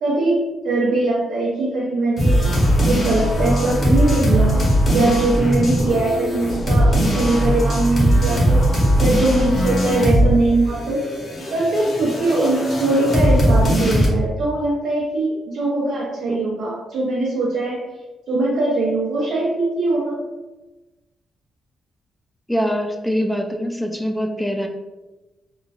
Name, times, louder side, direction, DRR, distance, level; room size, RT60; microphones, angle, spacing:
voice 1, 0.0-2.5 2.8-8.6 9.0-11.1 11.5-17.8 18.3-20.2, right 2 dB, 80° right, -6 dB, 0.6 m, -21 dB
sound 1, 2.2-10.4 10.6-14.1, equal, 35° left, 0.9 m, -19 dB
voice 2, 22.5-24.7, equal, 5° left, 3 dB, 0.3 m, -23 dB
3.0 x 2.4 x 2.3 m, 1.1 s
cardioid pair, 130°, 0 cm